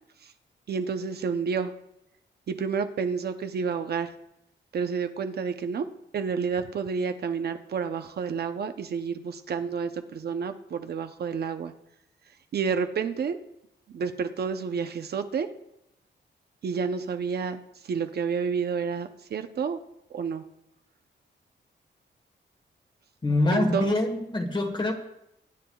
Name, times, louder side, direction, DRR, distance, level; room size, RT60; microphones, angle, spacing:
voice 1, 0.7-1.7 2.5-4.1 4.7-5.9 6.1-11.7 12.5-13.4 13.9-15.5 16.6-19.8 20.1-20.4 23.5-23.9, right 6 dB, 55° right, 0.7 m, -30 dB
voice 2, 23.2-24.9, left 2 dB, 25° left, 1.4 m, -25 dB
24.0 x 10.0 x 2.3 m
wide cardioid pair, 160°, 19 cm